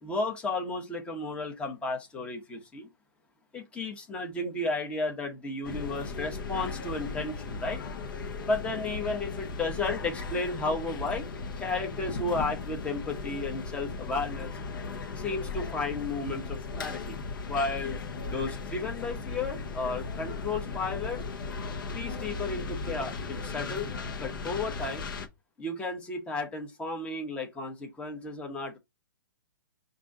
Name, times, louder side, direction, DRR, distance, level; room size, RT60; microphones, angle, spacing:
voice 1, 0.0-2.9 3.5-7.8 8.4-11.3 11.6-14.5 15.2-17.2 17.5-18.0 18.3-21.2 21.9-23.9 24.2-25.1 25.6-28.8, left 3 dB, 10° left, 0.8 m, -33 dB
sound 1, 5.6-25.3, left 4 dB, 70° left, 1.0 m, -37 dB
5.1 x 2.6 x 3.6 m
hypercardioid pair, 155°, 11 cm